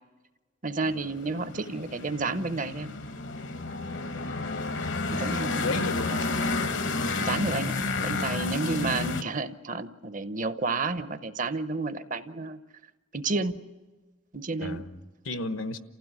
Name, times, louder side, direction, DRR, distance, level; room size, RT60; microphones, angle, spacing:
voice 1, 0.6-2.9 5.1-6.2 7.2-12.6 13.1-13.6 14.3-14.8, right 3 dB, 40° right, 0.7 m, -31 dB
sound 1, 0.9-9.2, left 3 dB, 60° left, 1.0 m, -31 dB
voice 2, 4.8-6.2 8.0-8.4 14.6-15.8, left 2 dB, 80° left, 1.3 m, -35 dB
28.5 x 16.0 x 9.7 m
head